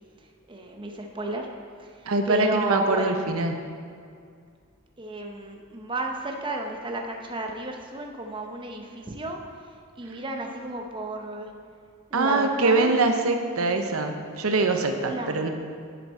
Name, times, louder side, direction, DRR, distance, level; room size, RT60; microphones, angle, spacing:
voice 1, 0.5-1.5 1.8-3.2 5.0-9.4 10.0-11.5 12.1-12.9 15.0-15.5, right 1 dB, 25° right, 2 dB, 0.8 m, -32 dB
voice 2, 2.0-3.6 12.1-15.5, right 3 dB, 75° right, 5 dB, 0.8 m, -23 dB
11.0 x 7.4 x 4.3 m, 2.2 s
head